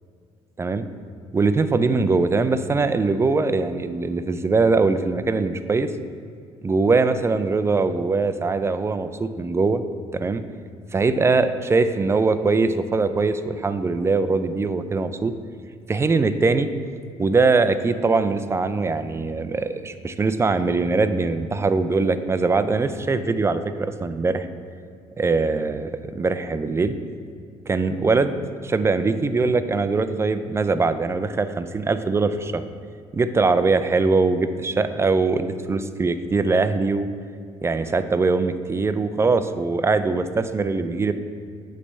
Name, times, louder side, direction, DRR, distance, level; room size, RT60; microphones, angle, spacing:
voice 1, 1.3-5.9 6.6-9.8 10.1-10.4 10.9-15.3 15.9-16.7 17.2-24.5 25.2-27.0 27.7-28.4 28.6-32.6 33.1-37.1 37.6-41.1, right 3 dB, 20° right, 11 dB, 0.4 m, -22 dB
8.5 x 3.3 x 5.3 m, 2.3 s
supercardioid pair, 80°, 12 cm